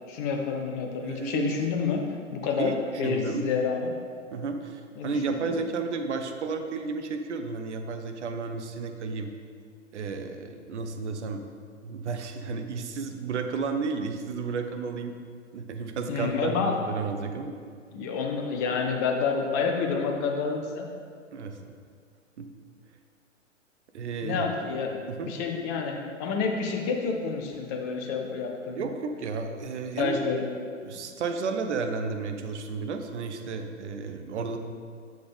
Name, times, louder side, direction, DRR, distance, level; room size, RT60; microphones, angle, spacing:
voice 1, 0.1-2.0 2.3-3.9 5.0-5.6 16.1-16.8 17.9-20.9 24.2-28.9 30.0-30.4, left 5 dB, 15° left, 2 dB, 0.4 m, -29 dB
voice 2, 1.0-1.5 2.6-3.5 4.3-9.3 9.9-11.4 11.8-15.1 15.5-17.6 21.3-21.6 22.4-22.5 23.9-24.4 25.1-25.3 28.7-30.2 30.8-34.6, right 4 dB, 60° right, 6 dB, 0.8 m, -32 dB
6.9 x 6.4 x 3.4 m, 2.1 s
figure-of-eight pair, 110°, 39 cm